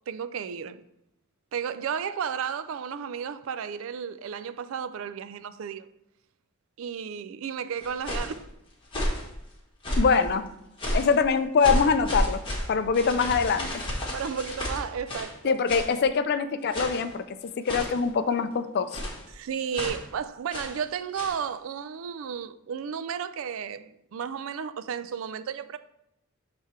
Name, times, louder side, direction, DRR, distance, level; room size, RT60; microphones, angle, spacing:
voice 1, 0.1-0.8 1.5-5.9 6.8-8.5 14.1-15.5 19.3-25.8, right 7 dB, 70° right, 0.4 m, -33 dB
sound 1, 7.8-8.4 8.8-9.3 9.8-10.2 10.8-11.2 11.6-15.4 15.7-15.9 16.7-17.1 17.6-18.1 18.9-19.2 19.7-20.0 20.5-20.8 21.1-21.4, equal, 25° left, 1.3 m, -31 dB
voice 2, 10.0-10.5 10.9-12.4 12.7-13.7 15.4-19.0, left 5 dB, 50° left, 0.4 m, -24 dB
6.5 x 3.4 x 4.3 m
head